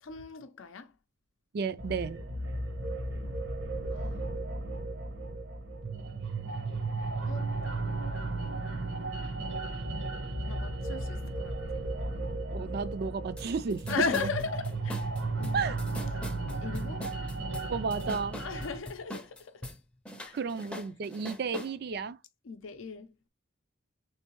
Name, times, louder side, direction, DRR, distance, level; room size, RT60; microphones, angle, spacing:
voice 1, 0.0-0.9 3.9-4.3 7.3-7.5 10.5-11.6 13.9-15.0 15.4-15.7 16.6-17.1 18.4-19.7 20.2-20.4 22.4-23.1, left 5 dB, 80° left, 0.5 m, -36 dB
voice 2, 1.5-2.2 12.5-14.3 15.5-15.8 17.7-18.4 20.3-22.2, right 5 dB, 50° right, 0.4 m, -33 dB
sound 1, 1.8-18.8, right 2 dB, 70° right, 1.1 m, -35 dB
sound 2, 13.4-13.5 13.7-19.8 20.1-21.7, equal, 5° left, 0.5 m, -41 dB
3.6 x 3.2 x 3.0 m
head